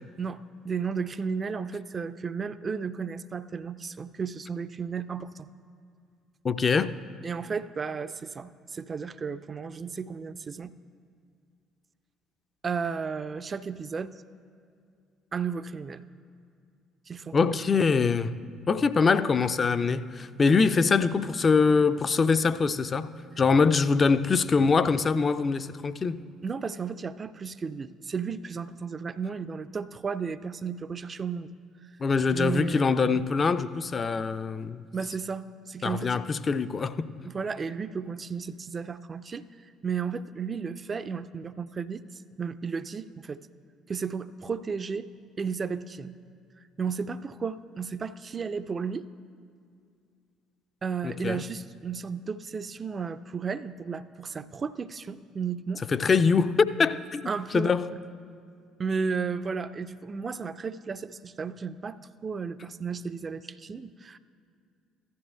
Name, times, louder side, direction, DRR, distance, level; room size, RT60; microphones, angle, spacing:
voice 1, 0.2-5.5 7.2-10.7 12.6-14.2 15.3-16.0 17.1-17.6 26.4-31.5 31.8-31.9 32.3-33.2 34.9-36.2 37.2-43.4 43.9-45.1 45.4-46.2 46.6-49.1 50.8-55.8 57.3-58.0 58.8-62.0 62.2-64.2, right 5 dB, 35° right, 0.4 m, -34 dB
voice 2, 6.4-6.9 17.3-18.3 18.7-23.1 23.4-26.2 32.0-34.8 35.8-37.1 51.0-51.4 55.9-57.2 57.5-57.9, left 5 dB, 35° left, 0.4 m, -23 dB
15.0 x 12.5 x 2.2 m
figure-of-eight pair, 50°, 0 cm